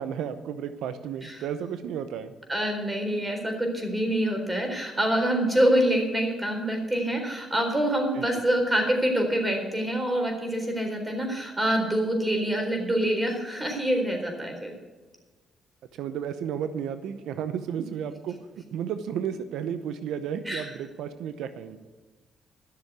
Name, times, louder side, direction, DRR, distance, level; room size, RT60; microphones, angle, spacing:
voice 1, 0.0-2.3 8.2-8.3 16.0-18.4 18.7-21.8, right 8 dB, 85° right, 11 dB, 0.7 m, -33 dB
voice 2, 2.5-14.7 17.8-17.9 20.5-20.7, right 1 dB, 15° right, 3 dB, 4.0 m, -26 dB
13.0 x 6.8 x 9.2 m, 1.3 s
cardioid pair, 90°, 0 cm